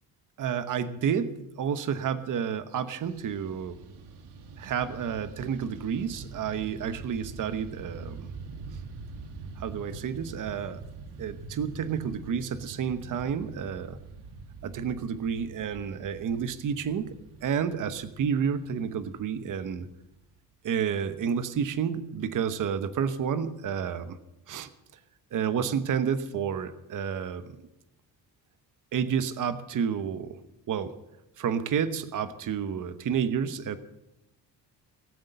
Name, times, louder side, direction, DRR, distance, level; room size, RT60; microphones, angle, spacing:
voice 1, 0.4-3.8 4.6-8.3 9.6-10.8 11.2-14.0 14.6-19.9 20.6-24.2 24.5-24.7 25.3-27.5 28.9-30.4 30.7-30.9 31.4-33.8, right 7 dB, 50° right, 12 dB, 1.0 m, -30 dB
Fixed-wing aircraft airplane, 3.0-20.4, right 4 dB, 80° right, 1.8 m, -44 dB
18.5 x 8.0 x 6.7 m, 0.93 s
cardioid pair, 105°, 39 cm